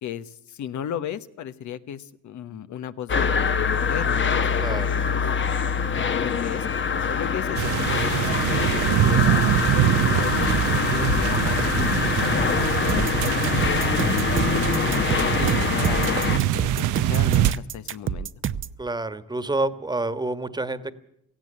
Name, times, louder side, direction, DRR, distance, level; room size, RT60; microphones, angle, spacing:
voice 1, 0.0-5.3 5.8-6.7 7.1-7.7 8.0-8.7 9.1-9.6 10.1-13.6 14.2-18.3, left 10 dB, 75° left, 12 dB, 1.1 m, -35 dB
sound 1, 3.1-16.4, left 6 dB, 40° left, 1.1 m, -24 dB
sound 2, 7.6-17.5, right 13 dB, 85° right, 0.8 m, -24 dB
sound 3, 12.9-18.8, right 8 dB, 40° right, 0.8 m, -29 dB
voice 2, 18.8-20.9, right 2 dB, 15° right, 12 dB, 1.4 m, -28 dB
17.5 x 15.5 x 10.0 m, 0.73 s
cardioid pair, 90°, 30 cm